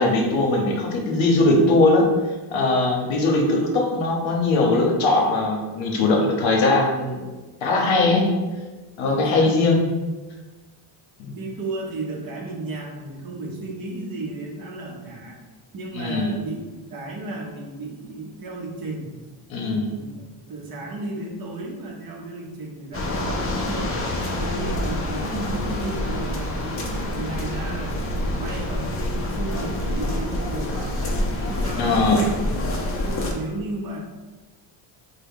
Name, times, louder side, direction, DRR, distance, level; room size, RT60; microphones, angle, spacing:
voice 1, 0.0-2.1 2.5-7.2 7.6-8.3 9.0-9.9 11.2-11.3 15.9-16.3 19.5-19.9 31.7-32.2, left 2 dB, 65° left, 0 dB, 0.8 m, -20 dB
voice 2, 9.1-9.6 11.3-15.4 15.7-16.6 16.9-19.1 19.7-24.0 24.3-28.0 28.2-32.6 33.0-34.0, right 2 dB, 45° right, 0 dB, 0.7 m, -34 dB
sound 1, 22.9-33.3, left 1 dB, 30° left, 0.5 m, -27 dB
3.3 x 2.2 x 3.5 m, 1.2 s
cardioid pair, 110°, 50 cm